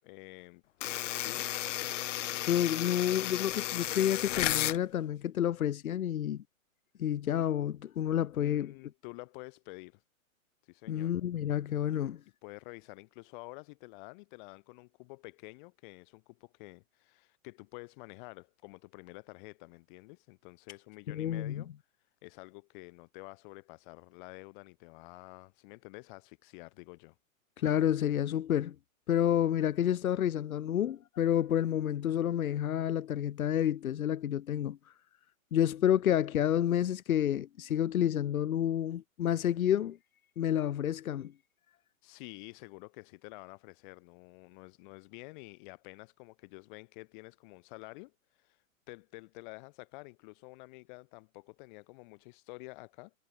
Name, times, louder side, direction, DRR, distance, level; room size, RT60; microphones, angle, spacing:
voice 1, 0.0-0.6 1.2-1.5 8.4-10.0 10.7-11.1 11.9-12.0 12.4-21.7 22.2-27.2 42.0-48.1 48.4-48.6 48.9-53.1, left 26 dB, 35° left, 6.3 m, -49 dB
sound 1, 0.8-4.8, left 13 dB, 60° left, 0.8 m, -33 dB
voice 2, 2.5-6.4 7.0-8.7 10.9-12.2 21.1-21.6 27.6-28.7 29.1-34.8 35.5-40.0 40.4-41.3, left 10 dB, 85° left, 1.1 m, -29 dB
hypercardioid pair, 155°, 41 cm